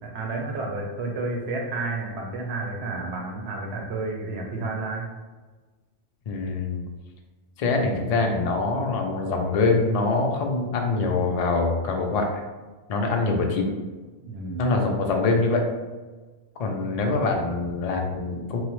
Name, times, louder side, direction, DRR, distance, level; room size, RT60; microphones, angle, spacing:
voice 1, 0.0-5.1 14.2-14.7, right 3 dB, 70° right, 0 dB, 0.8 m, -31 dB
voice 2, 6.3-6.8 7.6-12.3 12.9-13.7 14.6-15.6 16.6-18.6, left 3 dB, 75° left, 1 dB, 0.3 m, -24 dB
3.0 x 2.0 x 3.0 m, 1.3 s
omnidirectional pair, 1.2 m